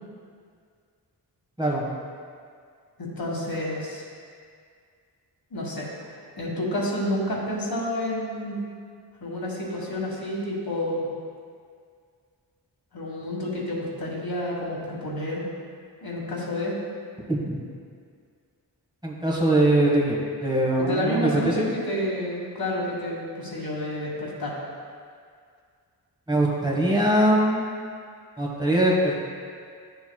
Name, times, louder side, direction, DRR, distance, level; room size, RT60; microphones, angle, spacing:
voice 1, 3.0-4.0 5.5-5.9 6.4-8.5 9.2-11.1 12.9-15.5 16.0-16.8 20.8-24.6, left 1 dB, 60° left, -3 dB, 1.7 m, -29 dB
voice 2, 17.3-17.6 19.0-21.7 26.3-27.6 28.4-29.3, right 1 dB, 10° right, -5 dB, 1.4 m, -22 dB
11.5 x 7.0 x 2.3 m, 2.1 s
wide cardioid pair, 105°, 41 cm